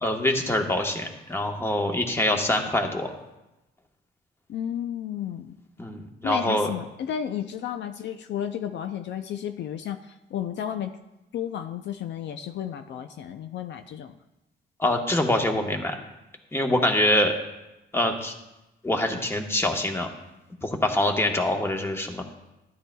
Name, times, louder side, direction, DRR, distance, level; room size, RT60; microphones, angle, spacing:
voice 1, 0.0-3.1 5.8-6.7 14.8-15.9 16.5-17.3 17.9-18.3 18.8-20.1 20.6-22.2, left 1 dB, 10° left, 3 dB, 1.2 m, -24 dB
voice 2, 4.5-5.6 6.2-10.9 11.3-14.1 16.7-16.8, left 9 dB, 65° left, 7 dB, 0.5 m, -32 dB
12.0 x 10.5 x 2.3 m, 0.97 s
cardioid pair, 90°, 20 cm